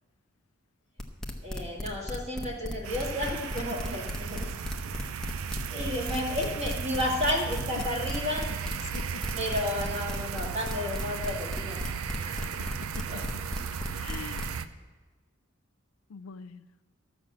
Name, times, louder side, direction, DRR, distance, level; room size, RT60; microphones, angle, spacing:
sound 1, 1.0-14.5, left 1 dB, 5° left, 0.9 m, -35 dB
voice 1, 1.4-4.6 4.8-5.3 5.7-8.5 9.4-12.5 13.1-13.2, left 1 dB, 30° right, -1 dB, 2.0 m, -32 dB
Space alien passing through a doomed vessel., 2.8-14.7, right 7 dB, 80° right, 0.5 m, -36 dB
voice 2, 13.6-14.5 16.1-16.6, left 6 dB, 75° left, 14 dB, 0.4 m, -44 dB
13.0 x 6.1 x 7.4 m, 1.3 s
head